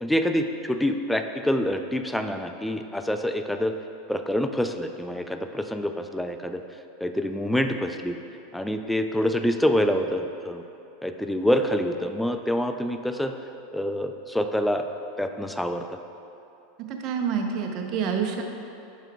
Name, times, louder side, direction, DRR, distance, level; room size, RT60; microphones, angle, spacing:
voice 1, 0.0-3.7 4.1-6.6 7.0-8.2 8.5-10.6 11.0-13.3 13.7-14.9 15.2-15.8, equal, 5° left, 6 dB, 0.4 m, -26 dB
voice 2, 16.9-18.4, right 6 dB, 50° right, 3 dB, 0.7 m, -27 dB
8.9 x 5.8 x 2.3 m, 2.7 s
hypercardioid pair, 100°, 0 cm